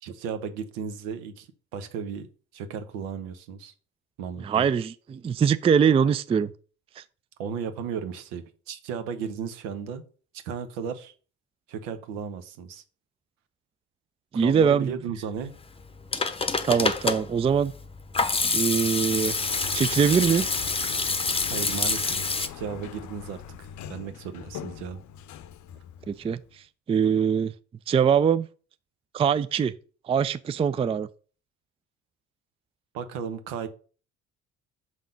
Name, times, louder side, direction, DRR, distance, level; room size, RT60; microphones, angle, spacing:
voice 1, 0.0-1.5 1.7-3.7 4.2-4.7 7.4-10.0 10.4-11.1 11.7-12.8 14.3-15.5 21.4-25.0 32.9-33.7, right 7 dB, 75° right, 1.1 m, -35 dB
voice 2, 4.4-6.5 7.0-7.1 14.3-14.9 16.6-17.7 18.5-19.3 19.7-20.5 26.1-26.4 26.9-27.5 27.9-28.5 29.1-29.7 30.1-31.1, right 7 dB, 15° right, 0.3 m, -22 dB
Hands / Sink (filling or washing), 15.8-22.5, left 4 dB, 15° left, 0.8 m, -27 dB
Sliding door, 18.8-26.6, left 9 dB, 55° left, 0.7 m, -41 dB
6.3 x 3.7 x 5.2 m
hypercardioid pair, 60°, 35 cm